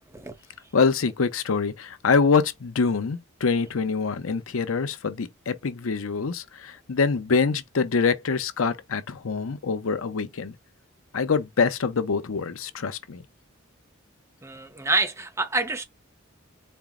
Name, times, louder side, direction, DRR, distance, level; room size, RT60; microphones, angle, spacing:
voice 1, 0.7-10.5 11.1-13.2, left 5 dB, 75° left, 0.6 m, -25 dB
voice 2, 14.4-15.8, right 3 dB, 15° right, 0.7 m, -27 dB
4.4 x 2.0 x 3.5 m
head